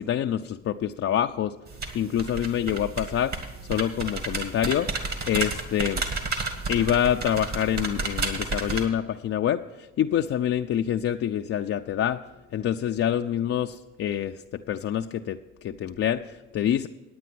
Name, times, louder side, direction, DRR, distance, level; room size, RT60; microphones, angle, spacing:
voice 1, 0.0-1.5 1.9-3.4 3.7-4.9 5.3-6.0 6.7-12.2 12.5-14.4 14.7-16.9, left 10 dB, 40° left, 5 dB, 0.4 m, -26 dB
sound 1, 1.7-8.8, right 3 dB, 50° right, 1.9 m, -31 dB
9.4 x 9.0 x 6.1 m, 1.1 s
hypercardioid pair, 60°, 36 cm